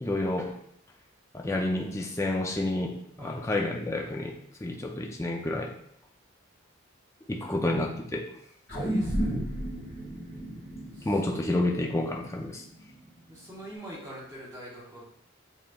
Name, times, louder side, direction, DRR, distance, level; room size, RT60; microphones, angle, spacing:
voice 1, 0.0-0.5 1.3-4.3 4.6-5.7 7.3-8.2 11.0-12.6, left 1 dB, 15° left, 0 dB, 0.4 m, -29 dB
voice 2, 7.4-7.7 8.7-9.3 10.9-11.1 13.3-15.0, equal, 15° right, -7 dB, 1.1 m, -44 dB
sound 1, 8.7-13.2 13.6-13.7, equal, 50° left, 1.6 m, -33 dB
7.3 x 3.1 x 2.3 m, 0.72 s
head